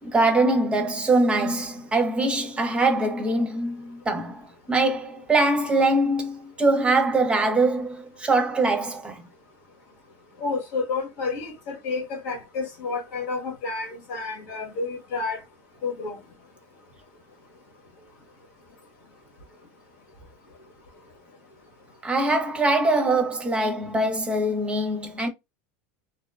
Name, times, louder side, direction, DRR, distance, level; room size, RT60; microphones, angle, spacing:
voice 1, 0.0-9.2 22.0-25.3, right 2 dB, 15° right, 0.6 m, -23 dB
voice 2, 10.4-15.4 15.8-16.2, left 4 dB, 80° left, 1.3 m, -30 dB
2.7 x 2.2 x 2.3 m
supercardioid pair, 110°, 7 cm